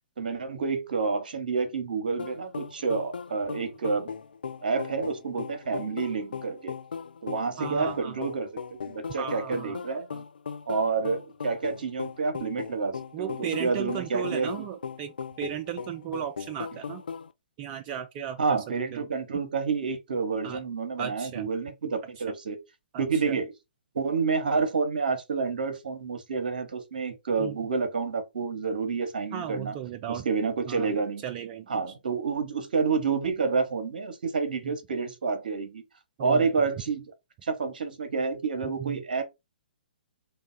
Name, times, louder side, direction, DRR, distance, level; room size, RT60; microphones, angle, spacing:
voice 1, 0.2-4.1 4.6-6.8 7.2-10.1 10.7-14.5 18.4-22.6 23.0-23.5 23.9-29.7 30.1-31.2 31.7-35.8 36.2-37.0 37.4-39.2, right 4 dB, 60° right, 0.9 m, -29 dB
sound 1, 2.2-17.3, left 6 dB, 70° left, 0.4 m, -38 dB
voice 2, 7.6-8.2 9.2-9.8 10.1-10.2 13.1-17.0 17.6-18.6 18.9-19.1 20.4-20.6 21.0-21.5 22.2-22.3 22.9-23.4 27.4-27.6 29.3-30.3 30.6-31.7 34.6-34.8 36.2-36.5 38.6-39.0, right 10 dB, 25° right, 0.3 m, -36 dB
3.4 x 2.2 x 3.9 m
figure-of-eight pair, 125°, 5 cm